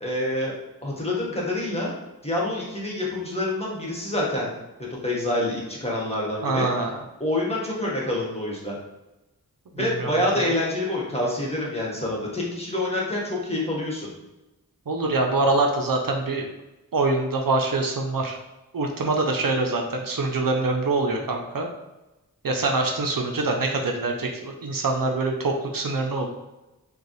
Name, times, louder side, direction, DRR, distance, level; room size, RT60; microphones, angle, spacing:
voice 1, 0.0-0.5 0.8-1.9 2.2-4.5 4.9-6.7 7.2-8.8 9.8-14.1, left 1 dB, 15° left, -4 dB, 1.4 m, -27 dB
voice 2, 6.4-6.9 9.7-10.1 14.9-16.5 16.9-18.4 18.7-21.7 22.4-26.3, right 3 dB, 65° right, 2 dB, 0.6 m, -24 dB
5.1 x 2.3 x 3.1 m, 1.0 s
wide cardioid pair, 55°, 36 cm